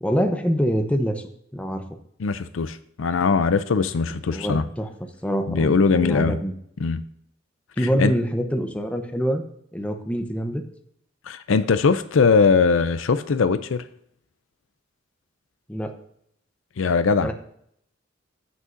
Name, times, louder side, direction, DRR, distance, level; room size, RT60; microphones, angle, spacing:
voice 1, 0.0-1.2 1.5-1.8 4.3-4.9 5.2-6.5 7.8-9.4 9.7-10.6 15.7-15.9 17.2-17.3, equal, 5° left, 5 dB, 0.8 m, -25 dB
voice 2, 2.2-4.6 5.5-6.4 6.8-7.0 8.0-8.1 11.3-13.8 16.8-17.3, left 5 dB, 75° left, 12 dB, 0.5 m, -20 dB
15.0 x 6.3 x 2.6 m, 0.71 s
head